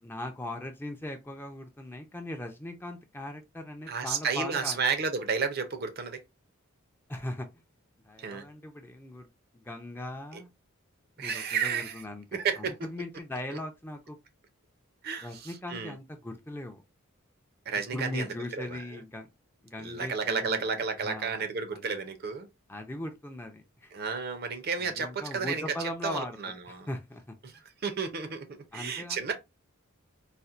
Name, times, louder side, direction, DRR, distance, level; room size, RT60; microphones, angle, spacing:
voice 1, 0.0-4.8 7.1-7.6 8.0-9.3 9.5-10.5 11.2-12.3 12.6-14.2 15.2-16.8 17.9-19.3 19.6-21.4 21.7-22.0 22.7-23.9 24.8-26.4 26.7-27.6 28.7-29.3, left 1 dB, 10° left, 0.4 m, -39 dB
voice 2, 3.9-6.2 8.2-8.5 10.3-10.4 11.2-12.0 12.3-12.9 13.5-13.6 15.0-15.9 17.7-18.3 18.6-18.8 19.8-22.5 23.9-25.7 26.0-26.9 27.4-27.5 27.8-29.3, right 5 dB, 45° right, 0.5 m, -32 dB
4.2 x 2.1 x 2.4 m
head